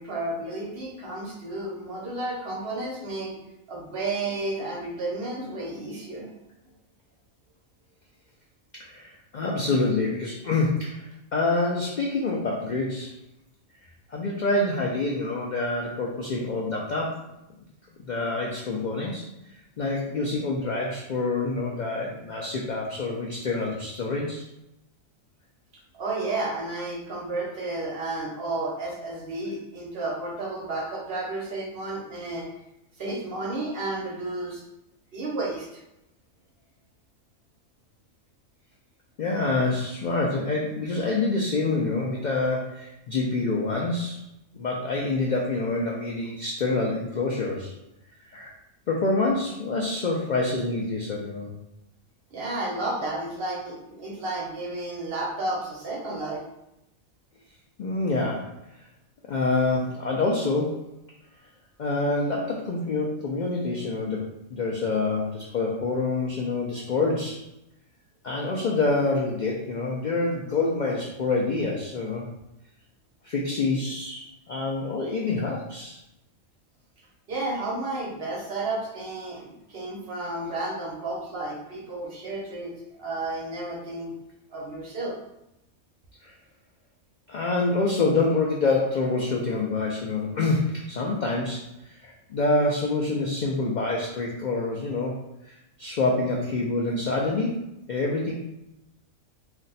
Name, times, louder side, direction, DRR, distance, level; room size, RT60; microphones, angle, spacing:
voice 1, 0.0-3.4 3.7-6.3 26.0-32.5 33.0-34.6 35.1-35.8 52.3-56.4 77.3-82.7 83.0-84.1 84.5-85.1, right 2 dB, 55° right, -3 dB, 0.9 m, -32 dB
voice 2, 8.8-13.1 14.1-17.3 18.0-19.2 19.8-24.4 39.2-44.2 44.6-47.7 48.3-48.5 48.9-51.5 57.8-58.5 59.3-60.9 61.8-67.4 68.2-72.3 73.2-76.0 86.2-86.3 87.3-95.5 95.8-98.3, left 3 dB, 90° left, -3 dB, 0.4 m, -26 dB
2.5 x 2.2 x 3.9 m, 0.88 s
omnidirectional pair, 1.4 m